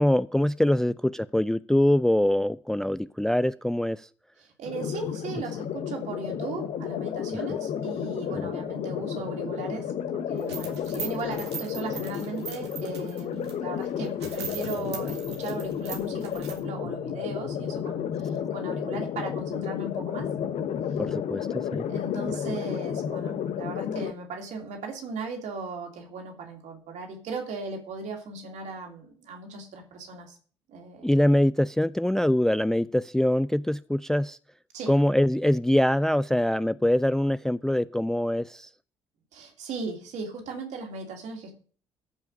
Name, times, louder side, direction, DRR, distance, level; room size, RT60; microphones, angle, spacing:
voice 1, 0.0-4.1 8.3-8.5 21.0-21.9 31.0-34.4 34.9-38.7, left 1 dB, 5° left, 17 dB, 0.4 m, -24 dB
voice 2, 4.4-20.3 21.9-30.4 30.7-31.1 34.7-34.9 39.3-41.5, right 4 dB, 60° right, 2 dB, 3.0 m, -37 dB
sound 1, 4.6-24.1, left 8 dB, 50° left, 0.9 m, -32 dB
sound 2, 10.4-13.5 13.9-14.0 14.2-16.6, right 7 dB, 75° right, 1.8 m, -40 dB
14.5 x 5.7 x 5.4 m, 0.43 s
figure-of-eight pair, 45°, 14 cm